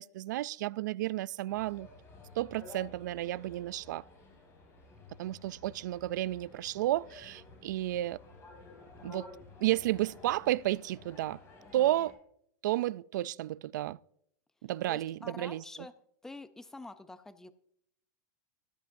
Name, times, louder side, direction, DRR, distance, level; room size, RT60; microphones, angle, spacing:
voice 1, 0.0-1.9 2.4-4.0 5.2-8.2 9.0-9.3 9.6-11.4 11.7-12.1 12.6-14.0 14.6-15.6, right 15 dB, 75° right, 0.3 m, -32 dB
sound 1, 1.5-12.1, left 3 dB, 25° left, 4.9 m, -53 dB
voice 2, 11.6-12.1 14.9-15.9 16.2-17.5, left 2 dB, 5° left, 0.5 m, -47 dB
15.0 x 12.5 x 2.6 m
supercardioid pair, 160°, 10 cm